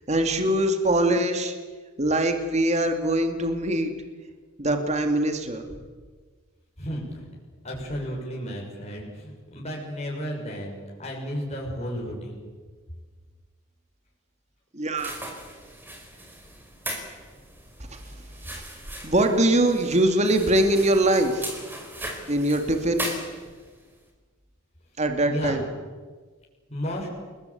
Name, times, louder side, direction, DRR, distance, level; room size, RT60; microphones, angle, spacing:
voice 1, 0.1-1.6 2.0-3.9 4.6-5.7 14.7-15.2 17.8-18.6 19.0-21.6 22.3-23.1 25.0-25.6, right 1 dB, 30° right, 5 dB, 2.6 m, -23 dB
voice 2, 6.8-7.3 7.6-12.4 25.3-25.6 26.7-27.1, equal, 30° left, -2 dB, 6.6 m, -33 dB
sound 1, 15.0-23.8, right 1 dB, 10° right, 4.7 m, -38 dB
29.5 x 21.0 x 8.6 m, 1.4 s
head